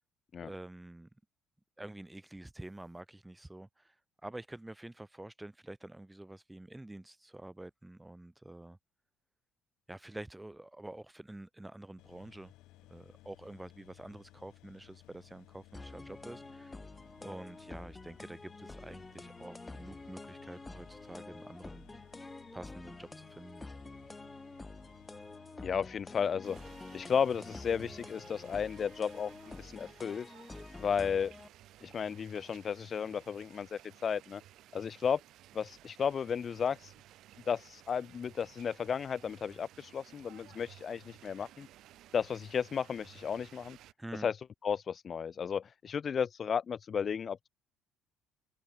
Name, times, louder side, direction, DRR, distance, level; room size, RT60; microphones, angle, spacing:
voice 1, 0.4-1.1 1.8-3.9 4.2-8.8 9.9-12.5 12.9-16.8 17.2-21.9 22.5-23.7 44.0-44.3, right 1 dB, 5° right, 2.6 m, -47 dB
sound 1, 12.0-29.7, left 17 dB, 75° left, 2.5 m, -59 dB
sound 2, 15.7-31.5, left 2 dB, 10° left, 1.6 m, -48 dB
voice 2, 25.6-26.6 26.9-29.3 29.6-30.3 30.8-31.3 31.8-34.4 34.7-35.2 35.5-36.9 37.5-41.7 42.1-43.8 44.2-44.4 44.6-47.5, left 7 dB, 30° left, 0.6 m, -34 dB
sound 3, 26.4-43.9, right 13 dB, 60° right, 4.3 m, -57 dB
cardioid pair, 145°, 0 cm